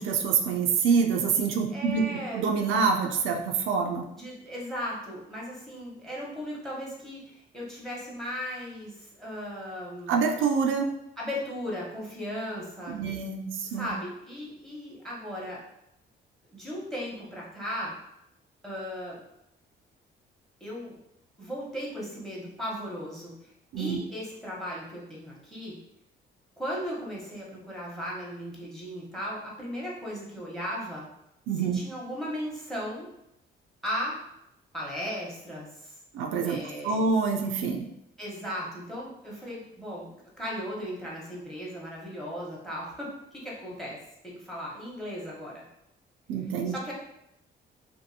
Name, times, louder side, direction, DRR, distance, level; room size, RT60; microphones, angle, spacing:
voice 1, 0.0-2.1 2.3-4.1 10.1-10.9 12.9-13.9 23.7-24.0 31.5-31.8 36.1-37.9 46.3-46.7, right 5 dB, 85° right, 2 dB, 0.4 m, -26 dB
voice 2, 1.7-2.5 4.1-10.2 11.2-13.1 13.7-15.6 16.5-18.0 18.6-19.2 20.6-21.0 21.4-23.5 23.8-25.8 26.6-31.1 31.5-33.1 33.8-34.2 34.7-36.0 36.4-37.0 38.2-40.1 40.4-44.0 44.2-45.6 46.6-46.9, equal, ahead, -4 dB, 1.0 m, -36 dB
2.6 x 2.6 x 2.7 m, 0.81 s
cardioid pair, 90°, 20 cm